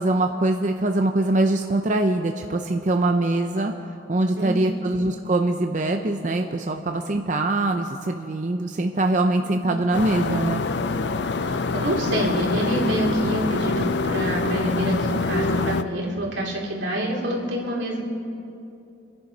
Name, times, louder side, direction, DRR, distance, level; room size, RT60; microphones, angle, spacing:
voice 1, 0.0-3.7 4.1-10.6, right 2 dB, 40° right, 5 dB, 0.6 m, -23 dB
voice 2, 4.3-4.8 9.4-9.7 11.4-18.0, right 1 dB, 85° right, -2 dB, 3.2 m, -27 dB
sound 1, 9.9-15.8, left 3 dB, 70° left, 0.5 m, -25 dB
27.0 x 9.8 x 5.4 m, 2.7 s
head